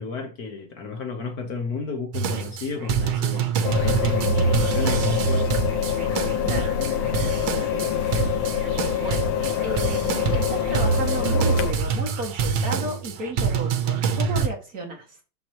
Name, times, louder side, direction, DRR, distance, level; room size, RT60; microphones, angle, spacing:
voice 1, 0.0-6.4, left 4 dB, 55° left, 1.3 m, -33 dB
sound 1, 2.1-14.5, right 6 dB, 90° right, 1.8 m, -25 dB
sound 2, 3.6-11.7, left 9 dB, 75° left, 1.5 m, -25 dB
voice 2, 6.4-6.8 7.1-8.3 9.0-9.3 9.6-15.2, right 1 dB, 45° right, 2.4 m, -34 dB
6.7 x 6.2 x 3.0 m
omnidirectional pair, 2.2 m